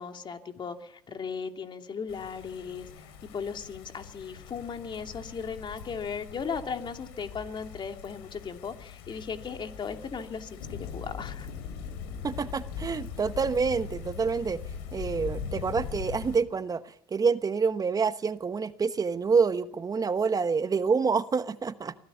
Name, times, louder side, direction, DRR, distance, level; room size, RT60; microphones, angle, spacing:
voice 1, 0.0-11.5, left 6 dB, 40° left, 5 dB, 2.6 m, -37 dB
sound 1, 2.1-16.4, left 6 dB, 85° left, 3.2 m, -41 dB
voice 2, 12.2-14.6 14.9-21.9, right 5 dB, 30° right, 12 dB, 1.1 m, -27 dB
24.5 x 16.5 x 7.1 m, 0.70 s
supercardioid pair, 70°, 12 cm